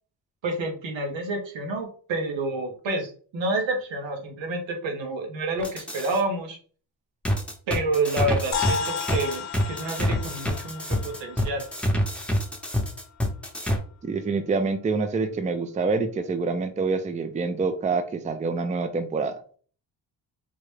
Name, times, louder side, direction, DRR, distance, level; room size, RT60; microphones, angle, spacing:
voice 1, 0.4-6.6 7.7-11.6, right 2 dB, 85° right, 2 dB, 1.1 m, -29 dB
sound 1, 5.6-6.2 7.2-13.8, equal, 5° left, 0.9 m, -26 dB
sound 2, 8.5-13.1, left 6 dB, 40° left, 0.5 m, -34 dB
voice 2, 14.0-19.4, right 4 dB, 15° right, 8 dB, 0.4 m, -26 dB
3.8 x 2.1 x 3.2 m, 0.42 s
cardioid pair, 75°, 44 cm